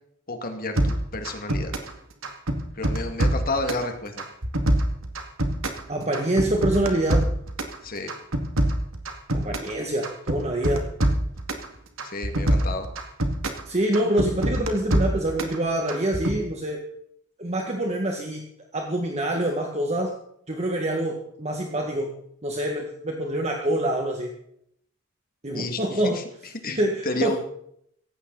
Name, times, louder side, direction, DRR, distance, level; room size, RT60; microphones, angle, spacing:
voice 1, 0.3-1.7 2.7-4.2 7.8-8.1 12.0-12.9 25.5-26.2 26.6-27.4, left 2 dB, 45° left, 5 dB, 2.2 m, -31 dB
sound 1, 0.8-1.9 2.2-3.9 4.2-5.8 6.1-7.8 8.1-9.7 10.0-11.7 12.0-13.6 13.9-15.6 15.9-16.4, right 1 dB, 75° right, 2.3 m, -24 dB
voice 2, 5.9-7.3 9.3-10.9 13.7-16.9 17.4-18.4 18.7-20.2 20.5-22.1 22.4-24.3 25.4-26.2 26.7-27.4, right 1 dB, 35° right, 2 dB, 2.0 m, -26 dB
17.0 x 15.5 x 4.1 m, 0.69 s
head